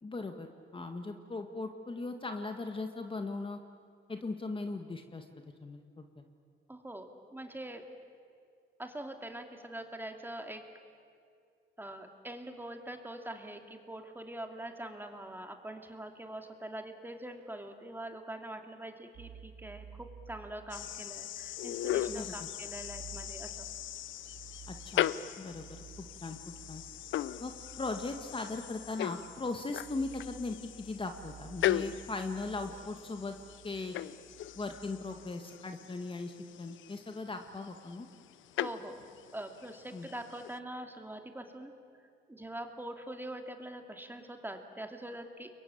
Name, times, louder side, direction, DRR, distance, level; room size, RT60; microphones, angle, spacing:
voice 1, 0.0-3.6 4.1-5.3 5.6-6.2 22.1-22.5 24.7-25.1 25.4-26.4 26.7-26.8 27.4-33.4 33.6-34.0 34.6-38.1 39.9-40.1, left 3 dB, 25° left, 6 dB, 1.8 m, -39 dB
voice 2, 6.7-7.8 8.8-10.6 11.8-23.6 38.6-39.0 39.3-41.7 42.3-45.5, right 1 dB, 10° right, 5 dB, 2.7 m, -44 dB
sound 1, 19.1-35.3, right 7 dB, 65° right, 1.6 m, -54 dB
sound 2, 20.7-40.6, left 12 dB, 75° left, 0.7 m, -39 dB
29.5 x 22.5 x 8.7 m, 2.2 s
cardioid pair, 90°, 20 cm